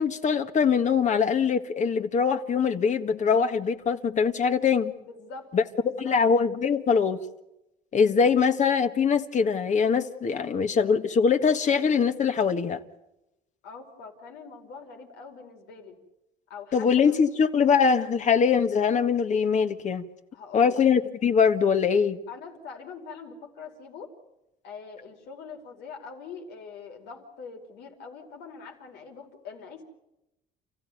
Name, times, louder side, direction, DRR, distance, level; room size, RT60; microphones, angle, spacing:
voice 1, 0.0-4.9 5.5-7.2 7.9-12.8 16.7-20.1 20.5-22.2, left 6 dB, 45° left, 8 dB, 1.8 m, -23 dB
voice 2, 5.0-5.5 5.8-6.2 13.6-16.0 16.5-17.2 20.3-20.8 22.3-24.1 24.6-29.8, left 5 dB, 85° left, 2 dB, 5.3 m, -43 dB
29.5 x 15.0 x 9.5 m, 0.91 s
cardioid pair, 110°, 17 cm